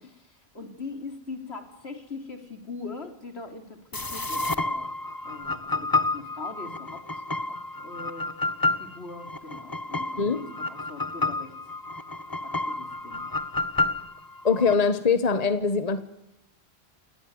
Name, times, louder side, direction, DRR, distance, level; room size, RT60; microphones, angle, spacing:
voice 1, 0.0-4.9 5.2-8.3 8.7-11.5 12.4-13.2, left 3 dB, 75° left, 6 dB, 3.7 m, -41 dB
sound 1, 3.9-14.7, left 2 dB, 20° left, 1.0 m, -30 dB
voice 2, 14.4-16.0, left 5 dB, 35° left, 11 dB, 1.3 m, -22 dB
28.5 x 19.0 x 9.6 m, 0.87 s
omnidirectional pair, 1.1 m